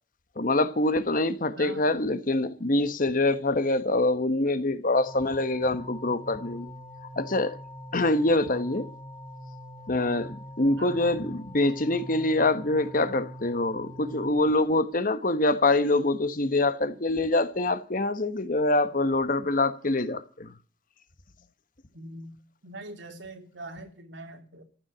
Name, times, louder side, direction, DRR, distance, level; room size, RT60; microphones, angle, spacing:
voice 1, 0.4-6.7 7.2-7.6 7.9-8.9 9.9-20.5, left 2 dB, 50° left, 1.2 m, -25 dB
sound 1, 5.1-14.3, equal, 20° left, 1.6 m, -43 dB
voice 2, 10.7-11.2 21.9-22.4 22.6-24.6, right 1 dB, 85° right, 3.1 m, -43 dB
15.0 x 7.4 x 9.9 m
head